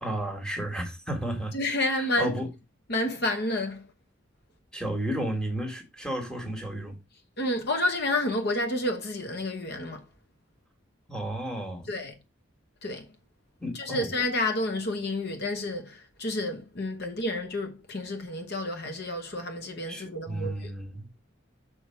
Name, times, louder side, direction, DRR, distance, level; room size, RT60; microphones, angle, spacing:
voice 1, 0.0-1.5 2.2-2.5 4.7-6.9 11.1-11.9 13.6-14.1 19.9-21.1, right 1 dB, 5° left, 1.6 m, -32 dB
voice 2, 1.5-2.3 2.9-3.9 7.4-10.0 11.9-12.1 12.8-13.1 13.7-20.7, left 1 dB, 55° left, 1.1 m, -30 dB
6.3 x 4.8 x 4.4 m
head